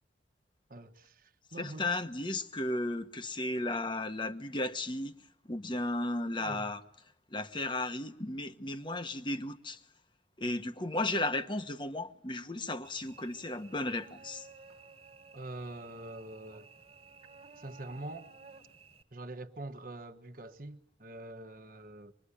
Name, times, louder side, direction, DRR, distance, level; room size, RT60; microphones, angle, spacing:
voice 1, 0.7-2.0 6.4-6.7 15.3-16.7 17.6-18.3 19.1-22.1, right 2 dB, 50° right, 1.4 m, -45 dB
voice 2, 1.6-5.1 5.4-6.8 7.3-9.8 10.4-14.5, left 2 dB, 25° left, 1.1 m, -34 dB
Cricket / Buzz, 12.8-19.0, right 4 dB, 35° right, 2.0 m, -55 dB
25.5 x 21.5 x 10.0 m
head